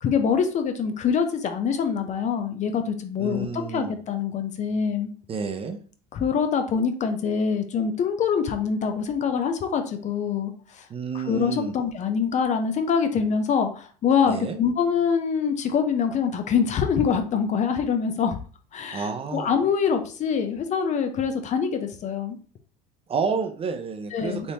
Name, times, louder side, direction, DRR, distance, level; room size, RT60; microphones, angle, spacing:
voice 1, 0.0-5.1 6.1-10.9 11.1-18.4 18.7-22.4 24.1-24.5, left 6 dB, 35° left, 6 dB, 0.5 m, -25 dB
voice 2, 3.2-3.9 5.3-5.8 10.9-11.7 14.3-14.6 18.9-19.5 23.1-24.5, right 5 dB, 30° right, 7 dB, 0.5 m, -30 dB
3.4 x 2.6 x 2.8 m, 0.41 s
hypercardioid pair, 80°, 20 cm